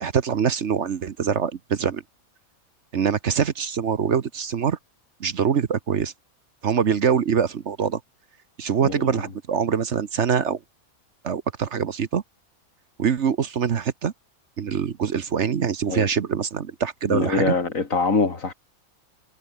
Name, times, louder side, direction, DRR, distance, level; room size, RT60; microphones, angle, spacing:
voice 1, 0.0-2.0 2.9-4.8 5.2-6.1 6.6-8.0 8.6-10.6 11.2-12.2 13.0-14.1 14.6-17.6, right 7 dB, 55° right, 1.2 m, -24 dB
voice 2, 8.8-9.2 15.9-16.1 17.1-18.5, left 4 dB, 65° left, 3.1 m, -24 dB
omnidirectional pair, 1.5 m